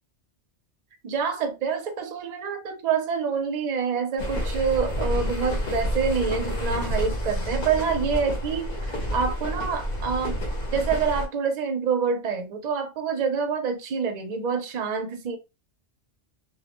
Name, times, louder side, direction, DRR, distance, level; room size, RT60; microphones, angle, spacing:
voice 1, 1.0-10.4 10.7-15.4, right 6 dB, 50° right, 0.6 m, -27 dB
sound 1, 4.2-11.3, equal, 50° left, 0.8 m, -29 dB
2.1 x 2.1 x 2.9 m
omnidirectional pair, 1.1 m